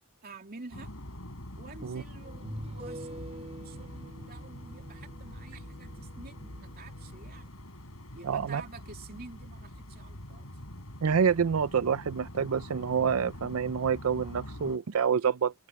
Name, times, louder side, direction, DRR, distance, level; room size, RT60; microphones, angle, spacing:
voice 1, 0.2-0.9 1.5-7.5 8.1-10.5, right 3 dB, 45° right, 2.8 m, -49 dB
sound 1, 0.7-14.8, left 1 dB, 90° left, 6.7 m, -45 dB
sound 2, 1.1-1.2 2.2-7.5, right 1 dB, 30° right, 4.9 m, -46 dB
voice 2, 8.2-8.6 11.0-15.5, right 6 dB, 85° right, 0.5 m, -27 dB
head